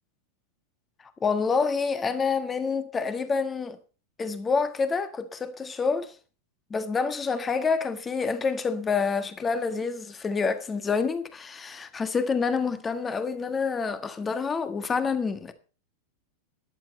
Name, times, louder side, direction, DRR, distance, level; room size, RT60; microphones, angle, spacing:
voice 1, 1.2-3.8 4.2-6.1 6.7-15.5, left 5 dB, 20° left, 1.6 m, -27 dB
13.5 x 11.5 x 4.3 m
figure-of-eight pair, 90°, 0 cm